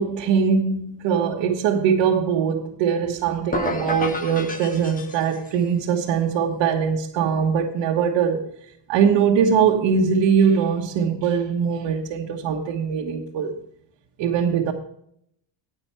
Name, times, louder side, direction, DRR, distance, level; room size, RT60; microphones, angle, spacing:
voice 1, 0.0-8.4 8.9-13.5 14.2-14.7, right 6 dB, 70° right, 1.3 m, -21 dB
sound 1, 3.5-5.6, left 2 dB, 20° left, 1.2 m, -30 dB
10.0 x 8.7 x 4.5 m
cardioid pair, 135°, 46 cm